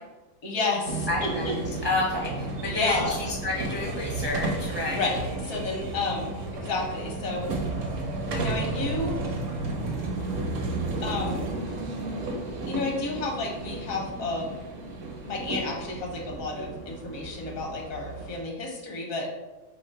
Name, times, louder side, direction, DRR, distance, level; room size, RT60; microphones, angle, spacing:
voice 1, 0.4-1.5 2.6-3.2 4.8-7.5 8.3-9.2 11.0-11.6 12.7-14.6 15.2-19.3, left 3 dB, 75° left, 0 dB, 1.4 m, -31 dB
sound 1, 0.9-18.4, right 2 dB, 65° right, 1.1 m, -33 dB
voice 2, 1.1-1.4 1.8-5.0, left 2 dB, 30° right, -3 dB, 0.4 m, -29 dB
3.7 x 3.0 x 4.5 m, 1.1 s
omnidirectional pair, 1.5 m